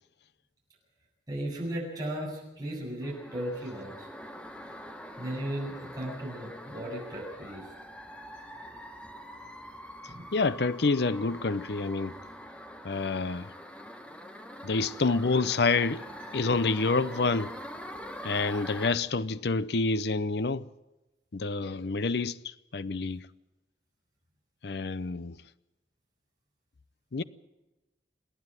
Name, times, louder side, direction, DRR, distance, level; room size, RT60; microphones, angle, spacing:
voice 1, 1.3-4.1 5.2-7.6 10.1-10.2, right 1 dB, 20° right, 7.8 m, -36 dB
sound 1, 3.0-18.9, equal, 5° left, 1.3 m, -44 dB
voice 2, 10.3-12.1 12.8-13.5 14.6-16.0 16.3-17.5 18.2-20.7 21.3-22.4 22.7-23.2 24.6-25.4 27.1-27.2, left 3 dB, 70° left, 0.6 m, -27 dB
28.0 x 10.0 x 9.1 m
head